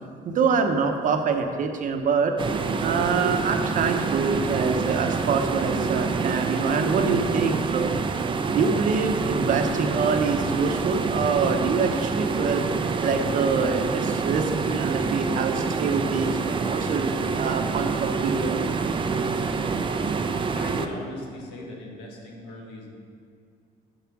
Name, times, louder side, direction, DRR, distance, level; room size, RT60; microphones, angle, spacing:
voice 1, 0.2-2.3 2.8-12.6 13.0-16.3 16.7-18.8, right 5 dB, 50° right, 5 dB, 0.9 m, -25 dB
sound 1, 2.4-20.9, right 4 dB, 30° right, 0.5 m, -27 dB
voice 2, 19.8-20.2 20.5-22.9, left 2 dB, 90° left, -1 dB, 1.6 m, -38 dB
7.0 x 5.8 x 6.0 m, 2.2 s
cardioid pair, 110°, 17 cm